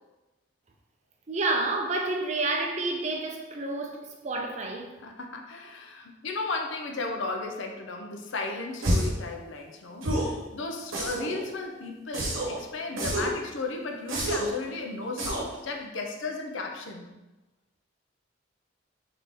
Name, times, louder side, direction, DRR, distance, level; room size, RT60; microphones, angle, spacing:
voice 1, 1.3-4.9, right 2 dB, 35° right, 0.5 m, -29 dB
voice 2, 5.0-17.1, left 3 dB, 75° left, 0.5 m, -35 dB
sound 1, 8.8-9.2 10.0-10.4 10.9-11.4 12.1-12.6 13.0-13.4 14.1-14.6 15.2-15.6, right 1 dB, 85° right, 0.9 m, -28 dB
3.6 x 2.8 x 4.0 m
head